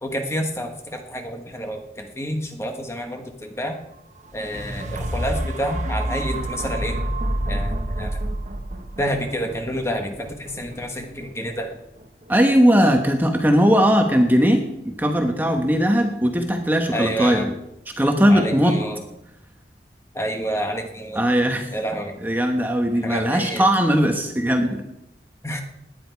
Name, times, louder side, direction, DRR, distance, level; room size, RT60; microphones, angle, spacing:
voice 1, 0.0-3.8 4.3-7.0 7.5-8.2 9.0-11.7 16.9-17.5 18.3-19.0 20.1-21.2 21.7-22.2 23.0-23.7 25.4-25.6, equal, 15° left, 4 dB, 1.3 m, -29 dB
sound 1, 4.2-12.2 12.8-12.9, right 1 dB, 40° right, 1.3 m, -29 dB
voice 2, 12.3-17.5 18.0-18.8 21.1-21.7 22.2-24.8, equal, 10° right, 4 dB, 1.2 m, -19 dB
18.0 x 10.5 x 4.6 m, 0.86 s
head